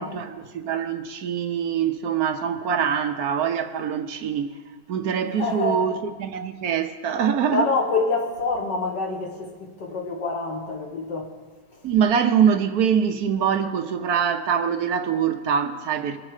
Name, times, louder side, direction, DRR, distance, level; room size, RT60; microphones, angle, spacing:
voice 1, 0.0-4.5 4.9-5.9 6.2-7.7 11.8-16.2, right 7 dB, 70° right, 1.1 m, -24 dB
voice 2, 5.2-5.9 7.5-11.3 11.7-11.9, left 3 dB, 80° left, 2.3 m, -27 dB
21.5 x 7.6 x 4.8 m
omnidirectional pair, 1.8 m